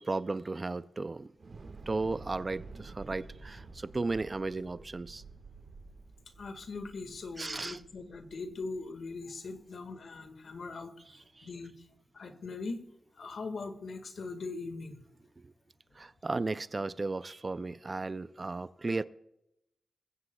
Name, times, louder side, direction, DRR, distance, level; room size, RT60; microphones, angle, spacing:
voice 1, 0.0-1.3 1.6-5.2 7.4-7.8 11.4-11.5 15.4-15.5 15.9-19.0, right 3 dB, 30° right, 0.3 m, -35 dB
Thunder / Explosion, 1.4-9.6, right 3 dB, 55° right, 1.6 m, -50 dB
voice 2, 6.3-11.9 12.1-12.8 13.1-15.1, left 3 dB, 65° left, 1.6 m, -41 dB
21.0 x 15.5 x 2.3 m
wide cardioid pair, 115°, 0 cm